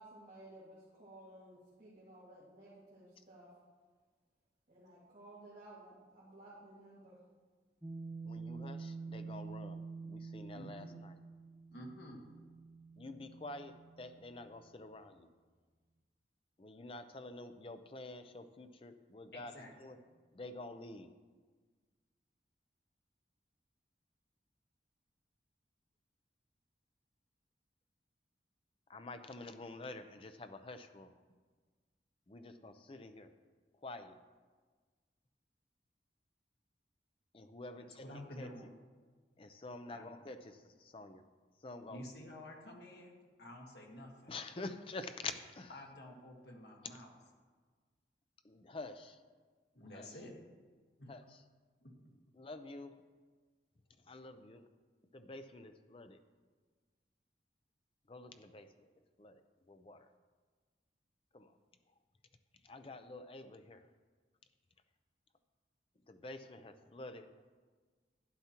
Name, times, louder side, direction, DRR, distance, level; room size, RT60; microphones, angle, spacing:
voice 1, 0.0-3.5 4.7-7.2, right 1 dB, 45° right, -9 dB, 2.1 m, -56 dB
sound 1, 7.8-14.5, right 4 dB, 10° right, 0.6 m, -48 dB
voice 2, 8.2-11.2 13.0-15.3 16.6-20.0 20.3-21.1 28.9-31.1 32.3-33.3 33.8-34.2 37.3-38.0 38.4-38.5 39.4-41.2 41.6-42.0 44.3-45.7 48.4-49.2 49.9-50.2 51.1-51.4 52.3-53.0 54.1-54.6 55.1-56.2 58.1-58.9 59.2-59.4 59.7-60.1 61.3-61.5 62.6-63.9 66.1-67.4, left 2 dB, 30° left, 8 dB, 0.5 m, -48 dB
voice 3, 10.5-11.0 11.7-12.2 19.3-20.0 37.8-38.7 39.9-40.1 41.9-43.1 43.4-44.3 45.7-47.1 49.7-50.3 51.0-51.2 51.8-52.1, left 1 dB, 70° left, 0 dB, 1.6 m, -51 dB
11.5 x 10.5 x 2.9 m, 1.4 s
head